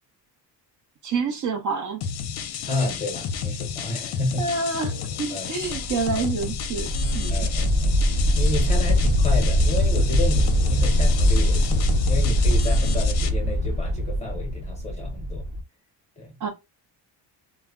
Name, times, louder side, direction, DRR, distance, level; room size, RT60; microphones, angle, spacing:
voice 1, 1.0-2.0 4.4-6.9 7.1-7.5 16.4-16.5, right 4 dB, 45° right, 0.5 m, -28 dB
sound 1, 2.0-13.3, left 7 dB, 60° left, 0.5 m, -31 dB
voice 2, 2.7-4.4 5.3-5.8 7.3-8.0 8.4-15.4 16.2-16.3, left 2 dB, 15° left, 0.6 m, -31 dB
sound 2, 5.6-15.6, equal, 65° right, 0.8 m, -22 dB
2.1 x 2.0 x 3.4 m
cardioid pair, 170°, 43 cm